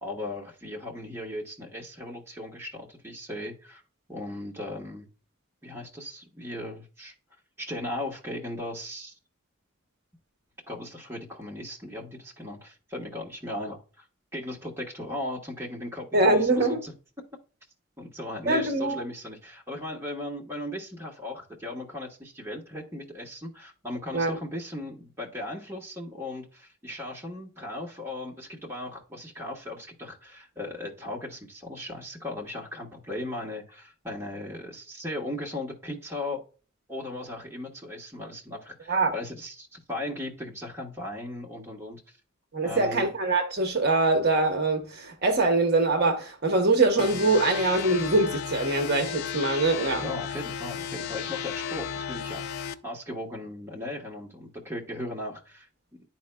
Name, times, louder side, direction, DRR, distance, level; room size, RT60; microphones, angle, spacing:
voice 1, 0.0-3.8 4.1-5.1 5.6-7.1 7.6-9.1 10.7-14.0 14.3-16.9 18.0-36.4 36.9-42.0 42.6-43.1 50.0-55.7, left 1 dB, 10° right, 1.2 m, -37 dB
voice 2, 16.1-16.8 18.5-19.0 24.1-24.3 38.9-39.1 42.5-50.1, right 2 dB, 50° right, 0.9 m, -23 dB
sound 1, 47.0-52.7, left 8 dB, 50° left, 0.4 m, -34 dB
11.0 x 4.2 x 2.2 m
head